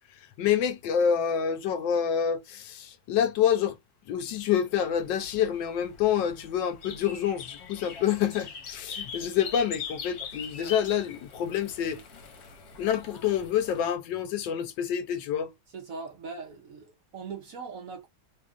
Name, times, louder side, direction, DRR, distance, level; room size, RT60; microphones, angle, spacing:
voice 1, 0.4-3.8 4.1-12.0 12.8-15.5, left 9 dB, 75° left, 1.3 m, -27 dB
sound 1, 4.7-13.9, left 6 dB, 60° left, 1.4 m, -42 dB
voice 2, 15.7-18.1, right 4 dB, 55° right, 1.0 m, -40 dB
3.3 x 2.3 x 3.5 m
omnidirectional pair, 2.1 m